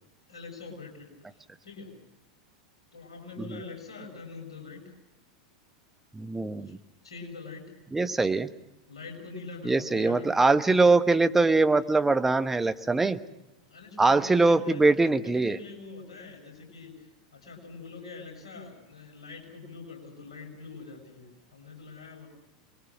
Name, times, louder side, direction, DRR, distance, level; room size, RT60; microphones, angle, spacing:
voice 1, 0.3-1.1 1.6-1.9 2.9-4.9 6.7-6.8 7.0-7.7 8.9-10.4 13.3-22.3, left 4 dB, 70° left, 2 dB, 6.9 m, -44 dB
voice 2, 6.1-6.7 7.9-8.5 9.6-13.2 14.0-15.6, right 3 dB, 10° right, 9 dB, 1.2 m, -22 dB
28.0 x 22.0 x 6.2 m, 0.93 s
figure-of-eight pair, 90°, 3 cm